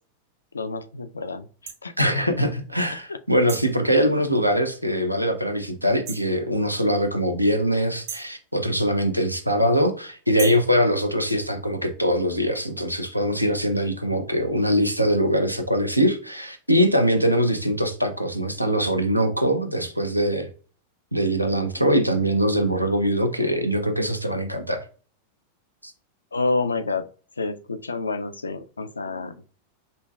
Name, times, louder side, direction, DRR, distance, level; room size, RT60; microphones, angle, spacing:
voice 1, 0.5-1.5 1.8-1.9 4.0-4.2 26.3-27.1 27.4-29.4, left 3 dB, 75° left, 10 dB, 0.3 m, -28 dB
sound 1, 1.7-1.8 3.5-3.8 6.1-6.3 8.1-8.4 10.4-10.7, right 7 dB, 45° right, 0.7 m, -36 dB
voice 2, 2.0-20.5 21.1-24.8 25.8-25.9, equal, 90° right, 7 dB, 0.5 m, -22 dB
5.2 x 2.2 x 2.3 m, 0.39 s
figure-of-eight pair, 90°, 0 cm